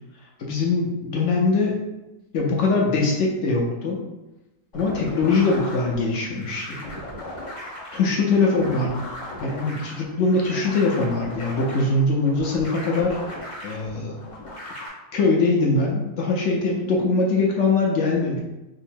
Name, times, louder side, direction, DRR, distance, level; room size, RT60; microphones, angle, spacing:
voice 1, 0.4-1.7 2.3-4.0 4.7-6.8 7.9-9.0 9.4-13.4 13.6-14.2 15.1-18.4, left 3 dB, 65° left, -2 dB, 0.8 m, -22 dB
sound 1, 4.7-14.9, left 1 dB, 35° left, 0.8 m, -37 dB
3.6 x 2.0 x 4.3 m, 1.0 s
omnidirectional pair, 1.7 m